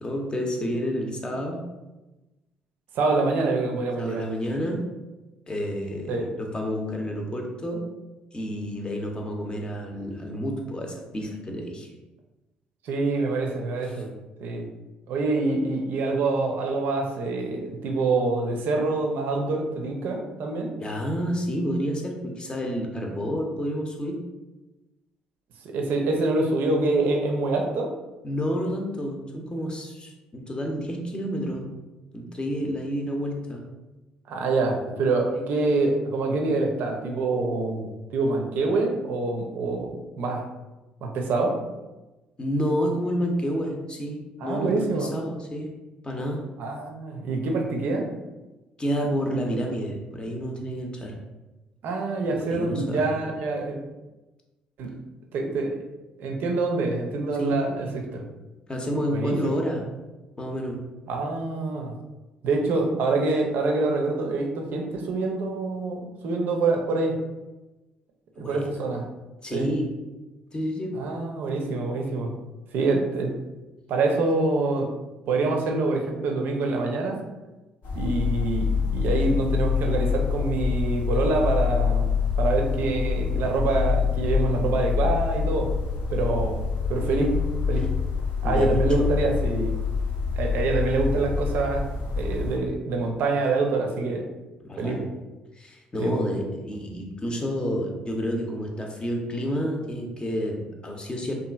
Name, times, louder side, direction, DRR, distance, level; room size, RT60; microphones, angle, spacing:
voice 1, 0.0-1.7 4.0-4.9 5.5-7.9 8.3-11.9 13.8-14.0 20.8-24.2 28.2-31.7 32.1-33.7 35.3-35.5 42.4-45.7 46.0-46.4 48.8-51.2 52.2-53.4 57.3-57.8 58.7-59.8 60.4-60.8 68.3-68.7 69.4-70.0 70.5-71.1 87.8-87.9 88.4-89.1 94.6-95.1 95.5-101.3, equal, 25° left, 1 dB, 0.6 m, -29 dB
voice 2, 2.9-4.3 6.1-6.2 12.8-14.1 14.4-14.7 15.1-20.8 25.7-27.9 34.3-40.4 41.0-41.6 44.4-45.1 46.6-48.1 51.8-53.8 54.8-54.9 55.3-55.7 56.2-57.9 58.1-58.2 59.1-59.4 61.1-61.9 62.4-67.2 68.4-69.1 69.5-69.7 70.9-72.3 72.7-73.3 73.9-74.9 75.3-77.2 77.9-82.1 82.4-85.7 86.1-86.6 86.9-87.3 87.7-87.9 88.4-89.8 90.3-91.9 92.2-94.3 94.8-95.0 96.0-96.2, right 3 dB, 65° right, 2 dB, 0.5 m, -25 dB
sound 1, 77.8-92.6, left 6 dB, 65° left, 0.6 m, -26 dB
2.8 x 2.4 x 2.3 m, 1.1 s
hypercardioid pair, 55°, 4 cm